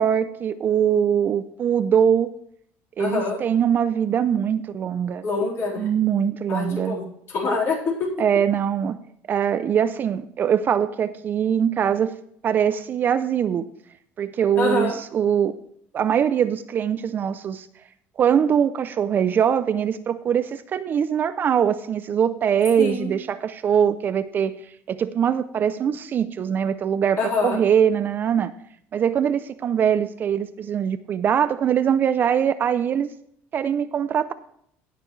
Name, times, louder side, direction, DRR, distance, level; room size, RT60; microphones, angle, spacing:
voice 1, 0.0-2.3 3.0-5.3 5.8-7.0 8.2-9.0 9.3-12.1 12.4-13.7 14.2-15.5 15.9-17.7 18.2-24.6 24.9-28.5 28.9-33.1 33.5-34.3, right 8 dB, 35° right, 13 dB, 0.5 m, -22 dB
voice 2, 3.0-3.4 5.2-5.9 6.5-8.1 14.6-14.9 22.8-23.1 27.2-27.6, left 3 dB, 45° left, -3 dB, 4.1 m, -25 dB
17.5 x 6.8 x 3.2 m, 0.69 s
cardioid pair, 140°, 6 cm